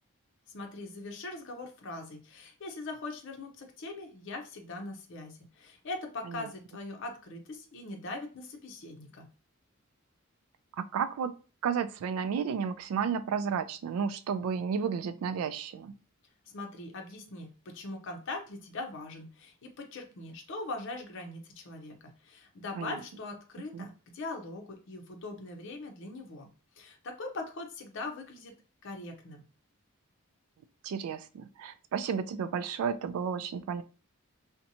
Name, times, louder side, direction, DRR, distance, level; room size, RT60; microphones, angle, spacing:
voice 1, 0.5-9.3 16.5-22.0 22.2-26.5 26.8-28.5 28.8-29.4, left 2 dB, 60° left, 4 dB, 0.5 m, -41 dB
voice 2, 10.8-11.3 11.6-15.9 22.8-23.0 23.7-23.9 30.8-33.8, right 6 dB, 85° right, 14 dB, 0.3 m, -32 dB
2.7 x 2.1 x 2.6 m, 0.35 s
head